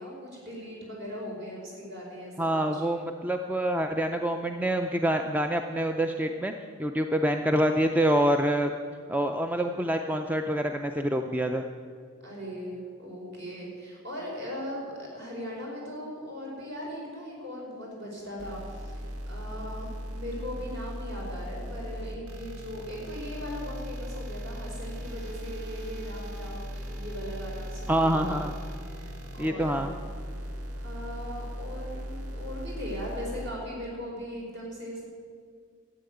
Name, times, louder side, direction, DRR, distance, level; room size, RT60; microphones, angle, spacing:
voice 1, 0.0-2.8 12.2-28.4 28.9-29.1 29.4-29.9 30.8-35.0, equal, 50° right, -3 dB, 4.7 m, -39 dB
voice 2, 2.4-6.5 6.8-8.7 9.1-11.6 27.9-28.5 29.4-29.9, right 1 dB, 10° right, 5 dB, 0.4 m, -26 dB
sound 1, 18.4-33.5, equal, 85° right, 1.8 m, -38 dB
13.0 x 8.6 x 9.1 m, 2.1 s
head